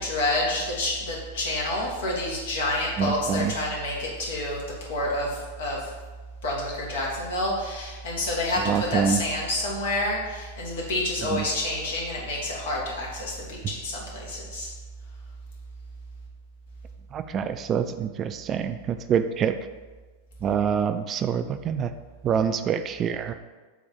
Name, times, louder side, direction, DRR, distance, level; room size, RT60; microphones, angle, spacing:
voice 1, 0.0-5.9 6.4-14.7, left 1 dB, 60° left, -3 dB, 2.2 m, -28 dB
voice 2, 3.0-3.5 8.7-9.2 11.3-11.4 17.1-19.5 20.4-21.9 22.2-23.3, right 7 dB, 30° right, 10 dB, 0.3 m, -26 dB
8.0 x 3.5 x 6.3 m, 1.3 s
figure-of-eight pair, 90°, 0 cm